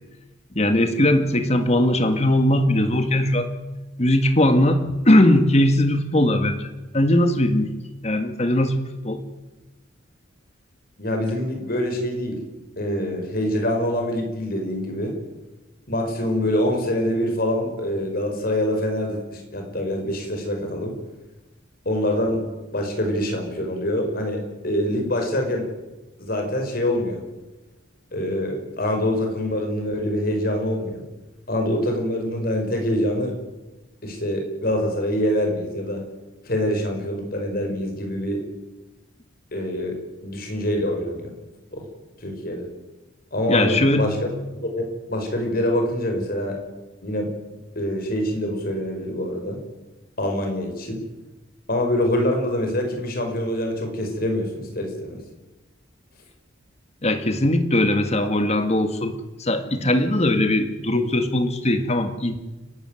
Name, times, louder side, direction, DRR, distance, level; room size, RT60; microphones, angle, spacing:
voice 1, 0.6-3.5 4.0-6.7 6.9-7.7 8.0-9.2 43.5-44.1 57.0-62.4, left 1 dB, 35° left, 8 dB, 1.8 m, -20 dB
voice 2, 11.0-12.4 12.8-15.1 15.9-20.9 21.9-22.4 22.7-25.7 26.2-27.2 28.1-31.0 31.5-33.3 34.0-36.0 36.4-38.4 39.5-40.0 40.2-41.3 41.7-41.8 42.2-42.7 43.3-44.2 44.6-46.6 47.0-47.3 47.8-49.6 50.2-51.0 51.7-55.2, left 1 dB, 50° left, 3 dB, 5.6 m, -25 dB
30.0 x 12.0 x 9.2 m, 1.1 s
head